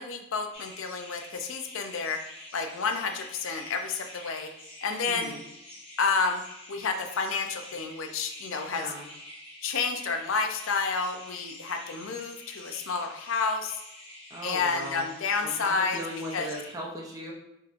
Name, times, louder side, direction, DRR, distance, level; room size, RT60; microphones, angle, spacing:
voice 1, 0.0-4.5 4.8-5.4 6.0-6.4 6.7-8.9 9.6-13.8 14.4-16.0 16.3-16.5, left 4 dB, 85° left, 5 dB, 0.5 m, -30 dB
sound 1, 0.5-16.7, left 1 dB, 30° left, 0.8 m, -47 dB
voice 2, 5.1-5.4 8.7-9.1 14.3-15.1 15.4-17.3, right 1 dB, 15° right, -2 dB, 0.6 m, -38 dB
4.3 x 3.6 x 2.5 m, 0.84 s
head